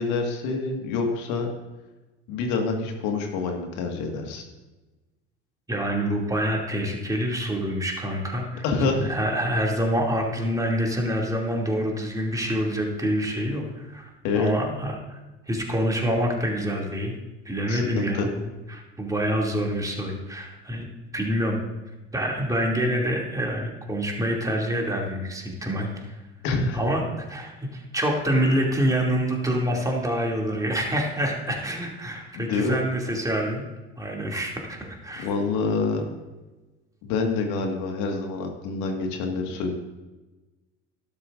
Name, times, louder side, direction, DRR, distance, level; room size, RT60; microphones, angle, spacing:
voice 1, 0.0-1.5 2.3-4.4 8.6-9.1 14.2-14.5 17.7-18.3 26.4-26.8 32.3-32.8 35.2-36.0 37.0-39.7, left 4 dB, 60° left, 3 dB, 1.9 m, -26 dB
voice 2, 5.7-15.2 15.5-17.1 17.4-20.9 21.1-21.6 22.1-26.2 26.7-33.6 34.0-35.3, equal, 10° right, -1 dB, 2.7 m, -26 dB
12.5 x 12.0 x 2.6 m, 1.1 s
figure-of-eight pair, 70°, 35 cm